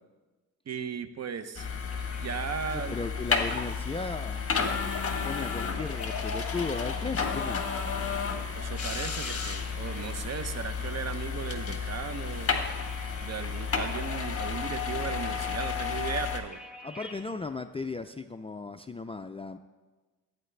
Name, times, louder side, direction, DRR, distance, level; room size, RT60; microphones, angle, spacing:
voice 1, 0.7-1.7 2.2-3.0 8.5-12.7 13.2-16.6, right 7 dB, 45° right, 10 dB, 0.7 m, -36 dB
sound 1, 1.6-16.4, left 5 dB, 40° left, 1.3 m, -32 dB
sound 2, 1.9-17.3, left 1 dB, 5° right, 1.2 m, -52 dB
voice 2, 2.7-4.4 5.2-7.7 16.8-19.6, left 4 dB, 15° left, 7 dB, 0.3 m, -36 dB
15.0 x 8.7 x 3.3 m, 1.2 s
cardioid pair, 105°, 36 cm